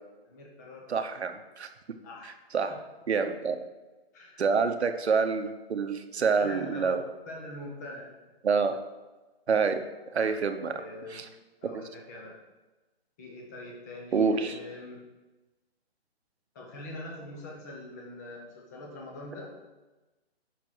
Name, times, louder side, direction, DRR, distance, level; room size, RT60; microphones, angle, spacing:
voice 1, 0.2-0.8 2.0-2.3 2.7-2.8 4.1-4.5 6.4-7.0 7.3-8.0 10.2-10.4 10.7-11.2 11.6-12.3 13.2-15.0 16.5-19.5, left 1 dB, 15° left, -1 dB, 0.9 m, -43 dB
voice 2, 0.9-1.7 2.5-2.7 3.1-3.6 4.4-7.0 8.4-8.8 9.5-9.8 10.1-10.7 11.1-11.3 14.1-14.6, right 5 dB, 90° right, 8 dB, 0.9 m, -27 dB
5.9 x 4.7 x 6.1 m, 1.1 s
hypercardioid pair, 165°, 32 cm